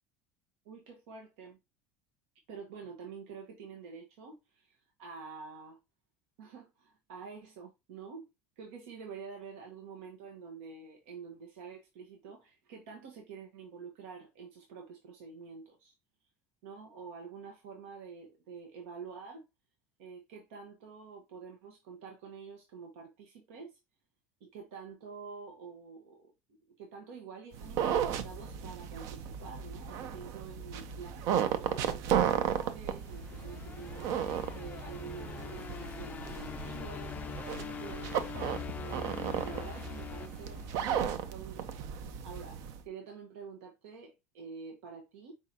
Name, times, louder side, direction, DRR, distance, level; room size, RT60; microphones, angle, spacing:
voice 1, 0.6-1.6 2.5-5.8 6.4-8.3 8.6-15.9 16.6-19.4 20.0-23.8 24.4-26.3 26.8-38.1 38.7-45.3, right 5 dB, 85° right, 1.1 m, -48 dB
sound 1, 27.5-42.8, right 8 dB, 60° right, 0.7 m, -35 dB
sound 2, 32.8-41.2, left 7 dB, 25° left, 0.3 m, -43 dB
4.8 x 3.7 x 2.8 m
supercardioid pair, 120°, 6 cm